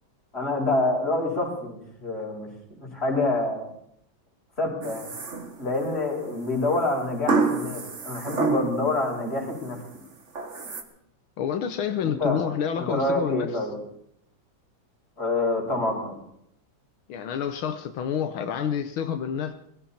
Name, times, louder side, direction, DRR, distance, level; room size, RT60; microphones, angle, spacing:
voice 1, 0.3-2.5 2.7-3.7 4.6-5.1 5.6-9.8 12.0-12.4 12.7-13.8 15.2-16.2, left 2 dB, 30° left, -2 dB, 5.7 m, -27 dB
sound 1, 4.8-5.9 7.3-9.0 9.4-9.8 10.4-10.8, right 4 dB, 40° right, 1.7 m, -27 dB
voice 2, 11.4-13.5 17.1-19.5, left 8 dB, 90° left, 7 dB, 1.8 m, -28 dB
20.5 x 16.0 x 4.3 m, 0.73 s
omnidirectional pair, 2.2 m